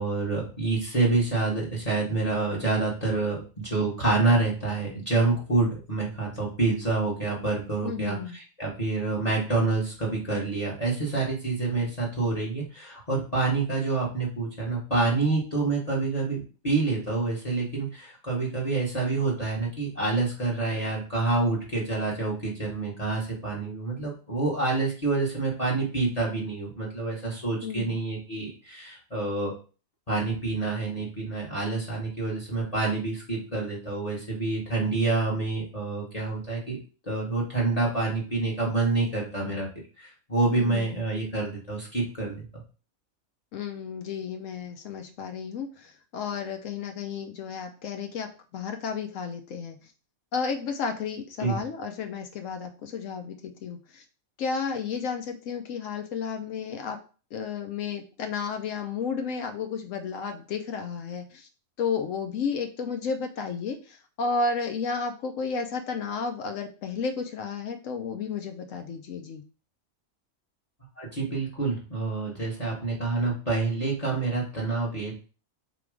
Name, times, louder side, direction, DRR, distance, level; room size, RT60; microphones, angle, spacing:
voice 1, 0.0-29.5 30.1-36.8 37.1-39.7 40.0-42.6 51.4-51.6 71.0-75.2, right 3 dB, 30° left, -2 dB, 1.1 m, -27 dB
voice 2, 7.8-8.4 27.6-27.9 40.5-41.0 43.5-49.8 50.3-54.0 54.4-57.0 57.3-61.5 61.8-69.4, left 5 dB, 75° left, 5 dB, 1.0 m, -32 dB
3.5 x 2.9 x 4.7 m, 0.36 s
omnidirectional pair, 1.4 m